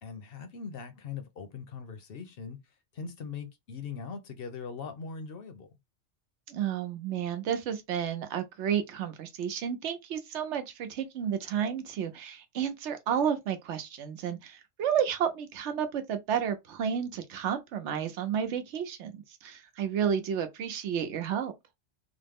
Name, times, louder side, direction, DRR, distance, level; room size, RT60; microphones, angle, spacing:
voice 1, 0.0-2.6 2.9-5.7, left 5 dB, 60° left, 0.8 m, -40 dB
voice 2, 6.5-21.5, right 8 dB, 80° right, 0.9 m, -31 dB
3.0 x 2.0 x 3.4 m
omnidirectional pair, 1.2 m